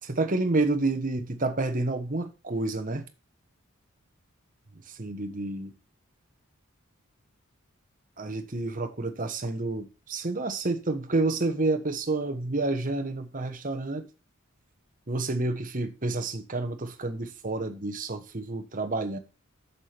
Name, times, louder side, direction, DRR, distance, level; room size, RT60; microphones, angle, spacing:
voice 1, 0.0-3.1 4.7-5.7 8.2-14.1 15.1-19.2, right 2 dB, 40° right, 1.2 m, -29 dB
7.4 x 7.0 x 6.0 m
head